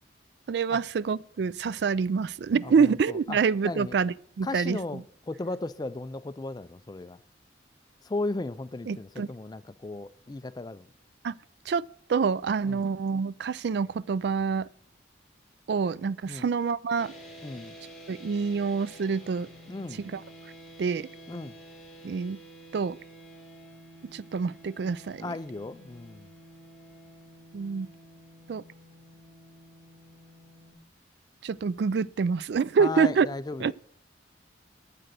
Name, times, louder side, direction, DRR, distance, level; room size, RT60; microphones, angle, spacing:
voice 1, 0.5-5.0 8.9-9.3 11.2-11.3 11.7-11.8 12.1-14.7 15.7-17.1 18.1-19.5 20.0-20.2 20.8-21.1 22.0-22.4 22.7-23.0 24.1-25.3 27.5-27.9 28.5-28.6 31.4-33.3 33.6-33.7, right 5 dB, 60° right, 0.3 m, -27 dB
voice 2, 2.6-3.4 3.6-4.0 4.4-7.2 8.0-10.9 12.6-12.8 16.3-16.5 17.4-17.8 19.7-20.0 21.3-21.5 25.2-26.3 32.8-33.7, left 2 dB, 20° left, 0.3 m, -36 dB
sound 1, 17.0-30.7, right 1 dB, ahead, 3.5 m, -50 dB
8.8 x 7.7 x 6.7 m
head